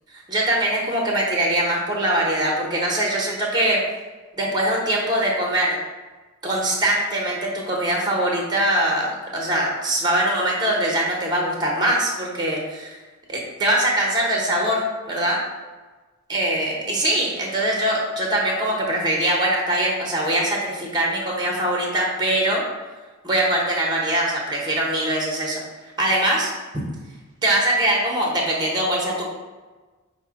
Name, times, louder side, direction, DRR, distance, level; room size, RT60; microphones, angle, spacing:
voice 1, 0.3-3.8 4.4-5.8 6.4-13.0 13.3-15.4 16.3-22.6 23.2-25.6 26.0-26.5 27.4-29.3, right 1 dB, 20° right, -2 dB, 0.8 m, -22 dB
5.2 x 2.1 x 4.7 m, 1.3 s
head